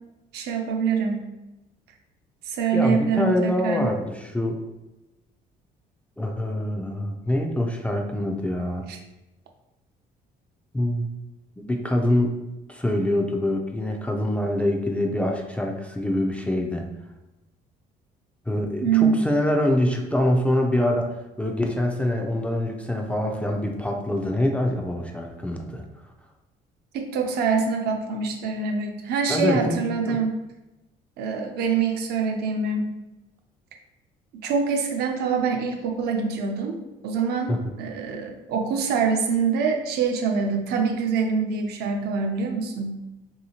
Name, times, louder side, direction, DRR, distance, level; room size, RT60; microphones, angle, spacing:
voice 1, 0.3-1.2 2.4-3.9 8.9-9.0 18.8-19.2 26.9-30.3 31.2-32.9 34.3-36.8 37.0-43.0, right 5 dB, 70° right, 3 dB, 0.5 m, -25 dB
voice 2, 2.7-4.6 6.2-8.9 10.7-11.1 11.6-12.3 12.7-16.8 18.5-25.8 29.3-29.8 30.1-30.2 37.5-37.6, left 1 dB, 10° left, 1 dB, 0.3 m, -25 dB
3.0 x 2.8 x 2.8 m, 0.98 s
cardioid pair, 110°, 17 cm